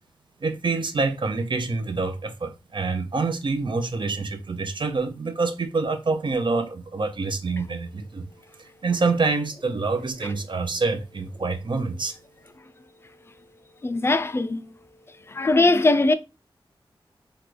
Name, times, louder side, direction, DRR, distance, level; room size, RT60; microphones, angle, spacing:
voice 1, 0.4-8.2 8.8-12.2, right 3 dB, 60° right, 0.6 m, -26 dB
voice 2, 13.8-14.6 15.3-16.1, left 2 dB, 25° left, 0.3 m, -20 dB
3.7 x 2.3 x 3.1 m
wide cardioid pair, 55°, 9 cm